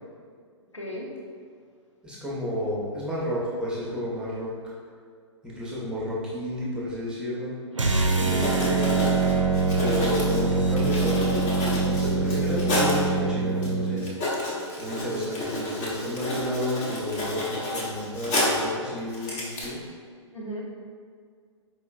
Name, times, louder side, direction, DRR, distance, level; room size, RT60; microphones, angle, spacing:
voice 1, 0.7-1.2 8.1-8.5 20.3-20.6, equal, 80° left, -2 dB, 0.7 m, -34 dB
voice 2, 2.0-4.7 5.4-7.5 8.3-9.0 9.8-14.1 14.8-19.8, equal, 5° right, -7 dB, 0.7 m, -31 dB
sound 1, 7.7-14.0, right 4 dB, 90° right, 0.4 m, -24 dB
Writing, 8.3-13.1 13.6-13.7 14.0-18.7 19.1-19.6, left 1 dB, 35° left, 1.0 m, -30 dB
4.7 x 2.9 x 2.4 m, 2.1 s
figure-of-eight pair, 110°, 15 cm